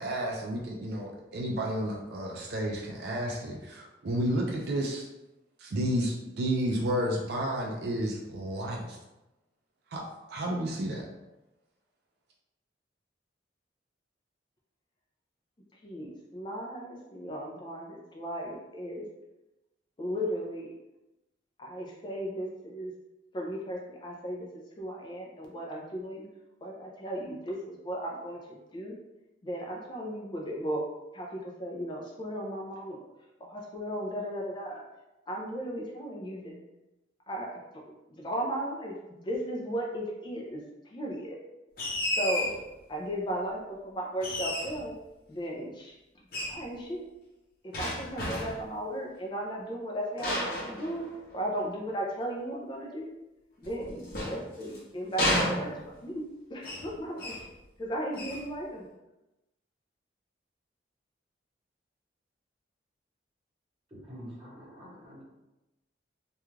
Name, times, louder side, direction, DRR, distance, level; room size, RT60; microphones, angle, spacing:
voice 1, 0.0-5.1 5.6-9.0 9.9-11.1, right 1 dB, 60° right, -1 dB, 0.3 m, -31 dB
voice 2, 15.8-19.1 20.0-20.7 21.6-22.9 23.3-24.5 24.8-26.3 26.6-28.9 29.4-30.8 31.1-33.1 33.4-34.8 35.3-36.6 37.3-37.5 38.2-40.6 40.9-41.4 42.2-42.5 42.9-44.9 45.3-45.9 46.5-47.1 47.6-51.1 51.3-53.1 53.6-55.8 56.0-56.2 56.5-57.3 57.8-58.9, equal, 25° left, -2 dB, 0.3 m, -36 dB
sound 1, 41.8-42.6 44.2-44.9 46.3-46.6 47.7-48.7 50.2-51.4 53.6-54.8 55.2-56.1 56.6-56.9 57.2-57.5 58.1-58.5, left 1 dB, 50° left, 0.7 m, -32 dB
voice 3, 63.9-65.2, equal, 30° right, -7 dB, 0.9 m, -46 dB
2.3 x 2.3 x 3.0 m, 0.98 s
head